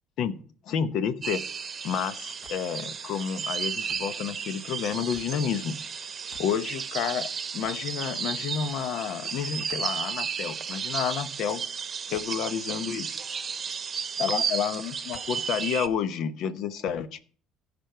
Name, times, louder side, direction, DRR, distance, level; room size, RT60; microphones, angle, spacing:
voice 1, 0.6-1.4 1.8-5.8 6.4-11.6 12.1-13.1 14.2-17.2, left 8 dB, 65° left, 12 dB, 0.9 m, -30 dB
sound 1, 1.2-15.9, right 6 dB, 35° right, 0.9 m, -33 dB
sound 2, 2.4-2.8 3.9-4.2 5.1-5.4 6.3-6.6 7.0-7.1 7.6-7.9 9.7-9.9 12.1-12.4 13.8-13.9 15.1-15.4 16.1-16.2, left 3 dB, 35° left, 1.2 m, -52 dB
15.5 x 5.3 x 4.6 m, 0.43 s
cardioid pair, 115°, 0 cm